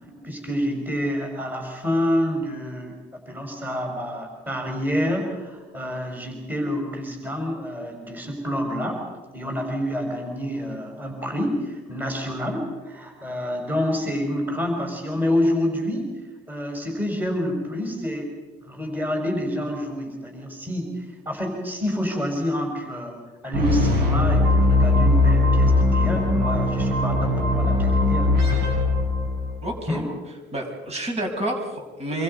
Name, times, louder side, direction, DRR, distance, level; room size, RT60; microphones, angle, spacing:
voice 1, 0.0-9.0 9.3-16.1 16.5-18.3 18.6-28.6 29.9-30.0, equal, 10° right, 2 dB, 4.7 m, -28 dB
sound 1, 23.5-29.7, left 2 dB, 75° right, 7.3 m, -20 dB
voice 2, 29.6-30.0 30.5-32.2, right 1 dB, 40° right, 2 dB, 5.8 m, -29 dB
26.0 x 25.5 x 5.4 m, 1.3 s
cardioid pair, 110°, 17 cm